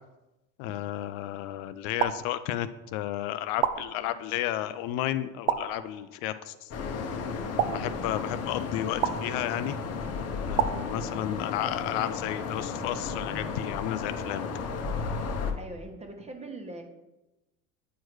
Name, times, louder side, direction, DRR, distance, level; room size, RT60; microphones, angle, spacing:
voice 1, 0.6-6.7 7.7-9.8 10.5-14.5, left 13 dB, 60° left, 12 dB, 0.5 m, -32 dB
sound 1, 2.0-2.9 3.6-4.5 5.5-6.3 7.6-8.5 9.0-9.8 10.6-11.6, right 10 dB, 60° right, 0.6 m, -32 dB
sound 2, 6.7-15.5, left 4 dB, 40° left, 0.9 m, -34 dB
voice 2, 11.3-11.6 15.5-16.8, right 2 dB, 15° right, 3 dB, 1.2 m, -42 dB
9.0 x 4.6 x 3.1 m, 0.99 s
supercardioid pair, 95°, 40 cm